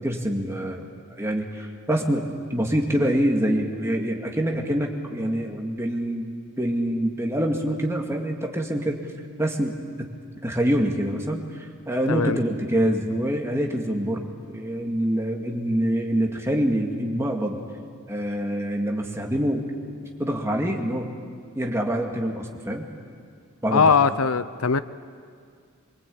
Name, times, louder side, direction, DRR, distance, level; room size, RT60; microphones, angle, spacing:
voice 1, 0.0-9.0 9.4-9.8 10.4-17.6 18.1-19.7 20.2-21.1 21.6-22.9 23.6-24.0, equal, 15° right, 2.2 m, -25 dB
voice 2, 12.1-12.4 23.7-24.8, left 5 dB, 85° left, 0.7 m, -20 dB
23.5 x 23.0 x 8.6 m
head